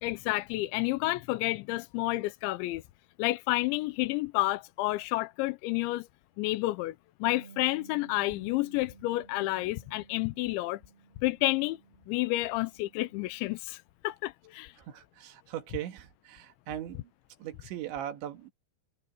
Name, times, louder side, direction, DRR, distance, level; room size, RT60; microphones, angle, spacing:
voice 1, 0.0-2.8 3.2-6.1 6.4-7.0 7.2-10.8 11.2-11.8 12.1-14.7, left 19 dB, 80° left, 2.9 m, -30 dB
Bass guitar, 7.3-13.5, right 6 dB, 85° right, 5.9 m, -56 dB
voice 2, 14.8-17.0 17.4-18.5, right 11 dB, 70° right, 3.8 m, -39 dB
omnidirectional pair, 5.7 m